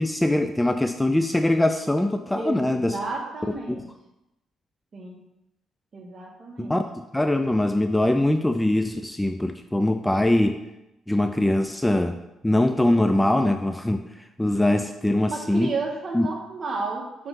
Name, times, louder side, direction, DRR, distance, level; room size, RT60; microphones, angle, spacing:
voice 1, 0.0-3.0 6.6-6.8 7.1-10.6 11.1-12.2 12.4-15.7 16.1-16.3, left 1 dB, 10° left, 7 dB, 0.4 m, -22 dB
voice 2, 2.3-3.9 4.9-5.2 5.9-6.8 15.3-17.3, right 3 dB, 45° right, 0 dB, 1.5 m, -32 dB
7.2 x 3.3 x 5.2 m, 0.91 s
cardioid pair, 90°, 0 cm